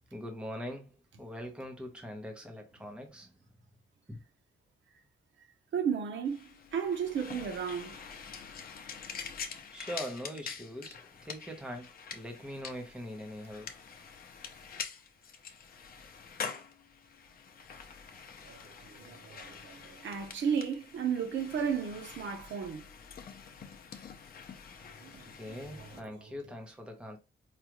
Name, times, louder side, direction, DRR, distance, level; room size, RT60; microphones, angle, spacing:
voice 1, 0.1-3.3 4.1-4.2 9.7-13.7 25.1-27.2, equal, 5° right, 0.7 m, -42 dB
voice 2, 5.7-8.0 18.4-22.9 25.0-26.0, right 7 dB, 70° right, 0.8 m, -34 dB
sound 1, 6.2-26.0, left 6 dB, 50° left, 0.6 m, -46 dB
4.9 x 2.3 x 2.9 m
wide cardioid pair, 175°, 20 cm